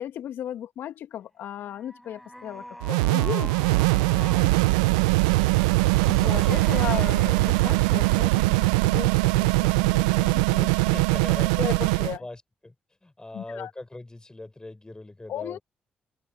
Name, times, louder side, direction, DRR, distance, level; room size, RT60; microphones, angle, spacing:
voice 1, 0.0-4.5 4.8-5.1 6.1-10.9 11.6-12.2 13.3-13.7 15.3-15.6, left 11 dB, 70° left, 1.8 m, -36 dB
sound 1, 1.5-4.5 5.4-8.6, equal, ahead, 6.9 m, -44 dB
sound 2, 2.8-12.2, right 23 dB, 90° right, 0.4 m, -21 dB
voice 2, 5.4-5.7 10.7-11.9 12.2-12.7 13.0-15.6, left 2 dB, 20° left, 6.3 m, -41 dB
hypercardioid pair, 40°, 4 cm